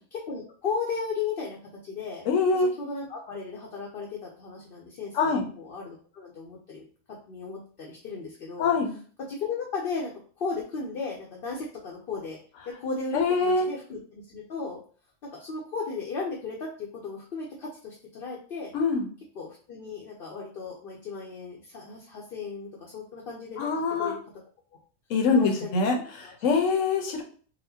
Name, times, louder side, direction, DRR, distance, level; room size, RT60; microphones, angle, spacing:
voice 1, 0.1-1.6 1.8-2.2 2.5-6.9 7.3-8.8 9.2-10.1 10.4-12.4 12.7-14.8 15.3-18.7 19.3-23.7 24.0-24.2 25.3-25.8 26.2-26.9, left 4 dB, 55° left, -2 dB, 0.7 m, -35 dB
voice 2, 2.3-2.7 5.1-5.4 8.6-8.9 13.1-13.7 18.7-19.1 23.6-24.1 25.1-27.2, left 4 dB, 75° left, 3 dB, 1.0 m, -24 dB
4.1 x 2.1 x 2.7 m, 0.43 s
omnidirectional pair, 1.4 m